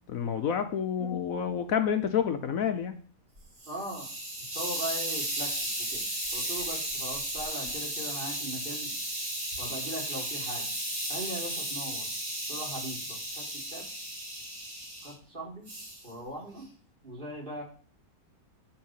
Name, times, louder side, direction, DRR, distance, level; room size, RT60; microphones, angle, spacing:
voice 1, 0.1-2.9 7.6-7.7, left 8 dB, 65° left, 9 dB, 1.2 m, -29 dB
Hiss, 3.4-15.1 15.7-16.0, right 1 dB, 65° right, 4.2 m, -35 dB
voice 2, 3.7-4.1 4.4-6.0 6.3-8.9 9.6-10.6 11.1-12.1 12.5-13.0 13.3-13.8 15.0-15.7 16.0-16.7 17.0-17.6, right 1 dB, 35° right, -2 dB, 3.8 m, -39 dB
9.5 x 7.3 x 5.7 m, 0.43 s
omnidirectional pair, 1.6 m